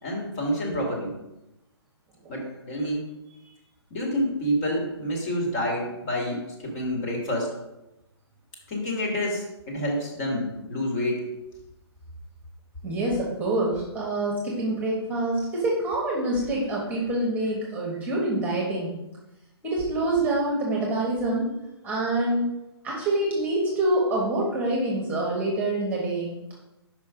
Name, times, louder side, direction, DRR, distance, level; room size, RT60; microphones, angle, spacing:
voice 1, 0.0-1.2 2.3-3.0 3.9-7.5 8.7-11.3, equal, 35° left, -1 dB, 2.2 m, -28 dB
voice 2, 12.8-18.9 19.6-21.5 21.8-22.5 22.8-26.3, right 1 dB, 10° right, -3 dB, 1.4 m, -26 dB
5.3 x 5.1 x 5.1 m, 0.94 s
hypercardioid pair, 145°, 14 cm